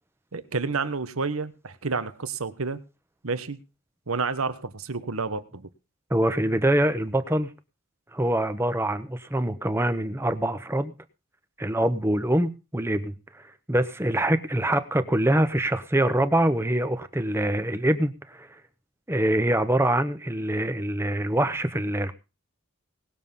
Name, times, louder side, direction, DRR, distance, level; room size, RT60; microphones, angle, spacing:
voice 1, 0.3-2.8 3.2-3.6 4.1-5.7, right 4 dB, 85° right, 1.2 m, -30 dB
voice 2, 6.1-7.5 8.1-10.9 11.6-13.4 13.7-18.5 19.1-22.1, right 1 dB, 10° right, 0.9 m, -24 dB
19.0 x 7.2 x 5.5 m
head